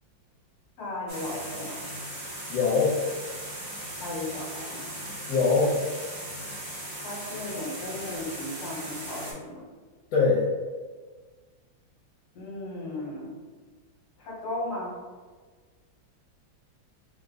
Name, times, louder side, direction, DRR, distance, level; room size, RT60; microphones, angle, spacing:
voice 1, 0.8-1.8 4.0-4.9 7.0-9.6 12.3-13.4 14.2-15.0, left 1 dB, 60° left, -5 dB, 1.4 m, -36 dB
sound 1, 1.1-9.3, right 1 dB, 40° right, 0.5 m, -38 dB
voice 2, 2.5-2.9 5.3-5.7 10.1-10.5, left 4 dB, 80° left, -5 dB, 1.3 m, -22 dB
3.3 x 2.1 x 3.7 m, 1.4 s
omnidirectional pair, 2.1 m